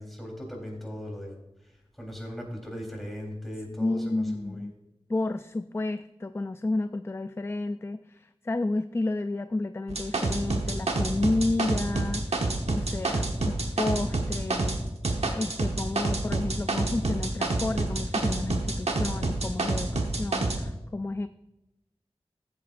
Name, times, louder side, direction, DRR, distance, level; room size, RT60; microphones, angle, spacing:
voice 1, 0.0-4.7, equal, ahead, -1 dB, 3.8 m, -39 dB
voice 2, 3.8-4.7 5.1-14.8 15.4-21.3, left 2 dB, 25° left, 12 dB, 0.3 m, -31 dB
sound 1, 9.9-14.8 15.0-20.6, right 2 dB, 85° right, 1.2 m, -28 dB
14.5 x 8.4 x 2.6 m, 0.93 s
wide cardioid pair, 45°, 10 cm